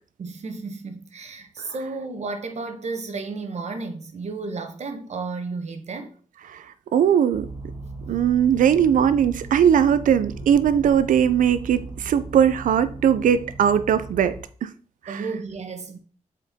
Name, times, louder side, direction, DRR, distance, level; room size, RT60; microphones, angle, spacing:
voice 1, 0.2-6.1 15.1-16.0, right 4 dB, 55° right, 1.3 m, -33 dB
voice 2, 6.9-7.5 8.1-14.7 15.1-15.2, right 8 dB, 85° right, 0.5 m, -19 dB
sound 1, 7.3-14.4, right 2 dB, 40° right, 2.0 m, -38 dB
7.8 x 4.6 x 3.6 m
cardioid pair, 75°, 13 cm